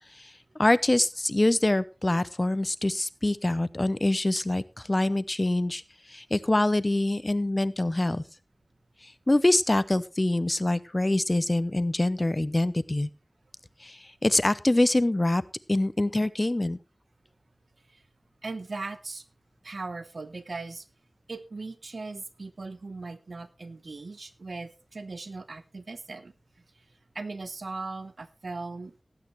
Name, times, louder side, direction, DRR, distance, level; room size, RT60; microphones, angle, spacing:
voice 1, 0.6-5.8 6.1-8.2 9.0-13.1 13.8-15.4 15.7-16.8, left 1 dB, 30° left, 0.7 m, -25 dB
voice 2, 18.4-19.2 19.6-20.9 21.3-26.3 27.1-29.0, right 3 dB, 80° right, 1.0 m, -38 dB
18.5 x 8.8 x 3.1 m
wide cardioid pair, 70°, 0 cm